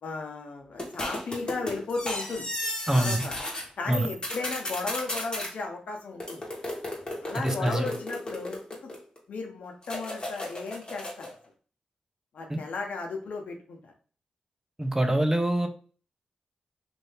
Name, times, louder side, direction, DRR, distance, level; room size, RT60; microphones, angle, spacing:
voice 1, 0.0-2.5 2.9-3.4 3.8-6.4 7.2-8.9 9.3-11.3 12.3-13.9, left 3 dB, 80° left, 2 dB, 0.8 m, -35 dB
sound 1, 0.8-3.6 3.9-5.5 6.2-9.2 9.8-11.3, left 1 dB, 35° left, 1.3 m, -34 dB
voice 2, 2.9-3.2 3.9-4.1 7.3-7.9 12.5-12.6 14.8-15.7, right 1 dB, 15° right, 6 dB, 0.7 m, -25 dB
2.7 x 2.7 x 3.3 m, 0.40 s
cardioid pair, 45°, 3 cm